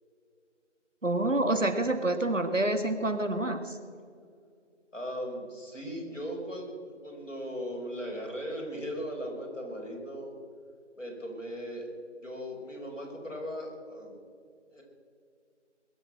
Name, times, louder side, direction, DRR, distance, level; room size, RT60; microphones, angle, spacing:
voice 1, 1.0-3.8, right 2 dB, 85° right, 7 dB, 2.1 m, -27 dB
voice 2, 4.9-10.3 11.0-11.9 12.2-14.2 14.7-14.8, equal, 85° left, -1 dB, 5.4 m, -38 dB
21.5 x 7.5 x 7.8 m, 2.2 s
figure-of-eight pair, 170°, 37 cm